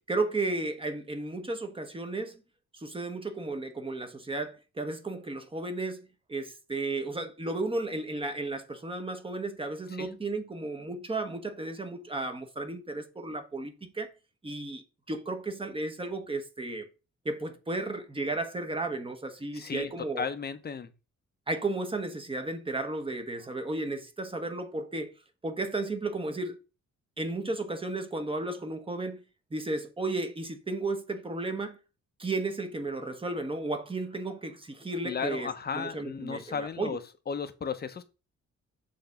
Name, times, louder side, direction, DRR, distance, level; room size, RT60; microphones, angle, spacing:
voice 1, 0.1-2.4 2.7-14.1 14.4-16.9 17.2-20.2 21.5-25.1 25.4-26.6 27.2-29.2 29.5-31.8 32.2-37.0, right 2 dB, 20° right, 1.0 m, -34 dB
voice 2, 19.5-20.9 35.0-37.0 37.3-38.0, left 6 dB, 35° left, 0.8 m, -35 dB
6.9 x 3.4 x 5.2 m
wide cardioid pair, 140°, 29 cm